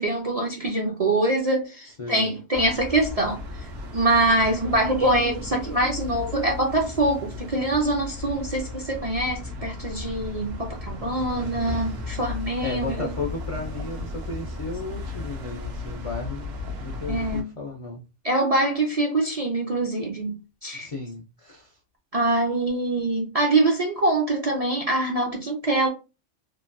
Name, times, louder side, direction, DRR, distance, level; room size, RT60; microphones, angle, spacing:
voice 1, 0.0-3.7 3.9-13.1 17.1-17.5 18.2-20.9 22.1-25.9, right 2 dB, 50° right, 0.4 m, -24 dB
voice 2, 2.0-2.3 12.6-16.5 16.8-18.0 20.7-21.8, left 3 dB, 60° left, 0.3 m, -34 dB
sound 1, 2.5-17.4, left 3 dB, 70° right, 0.9 m, -35 dB
2.9 x 2.2 x 2.5 m
omnidirectional pair, 1.3 m